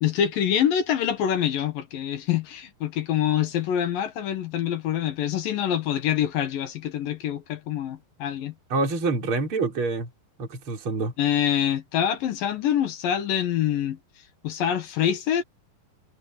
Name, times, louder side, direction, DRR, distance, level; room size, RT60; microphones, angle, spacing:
voice 1, 0.0-8.5 11.2-14.0 14.4-15.4, left 10 dB, 65° left, 2.6 m, -25 dB
voice 2, 8.7-10.1 10.4-11.1, right 3 dB, 30° right, 5.4 m, -26 dB
omnidirectional pair, 5.2 m